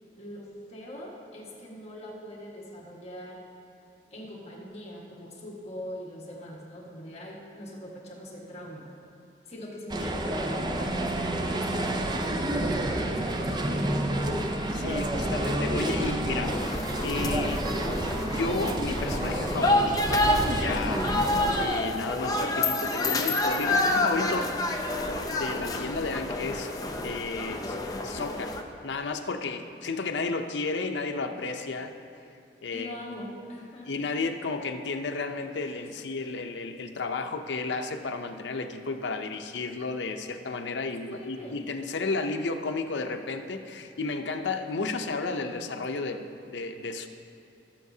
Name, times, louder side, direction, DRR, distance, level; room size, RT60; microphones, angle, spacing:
voice 1, 0.2-3.4 4.1-8.9 9.5-12.0 12.6-14.1 32.7-33.9 41.1-41.7, left 1 dB, 35° left, -4 dB, 1.6 m, -42 dB
sound 1, 9.9-21.7, right 1 dB, 25° right, 0.5 m, -29 dB
voice 2, 14.7-16.7 17.0-17.7 18.1-21.0 21.6-24.6 25.3-27.8 28.0-28.6 28.8-31.9 32.6-32.9 33.9-47.1, left 3 dB, 80° left, 6 dB, 0.6 m, -33 dB
sound 2, 16.4-28.6, left 2 dB, 20° left, 0.6 m, -28 dB
17.0 x 7.2 x 2.8 m, 2.6 s
head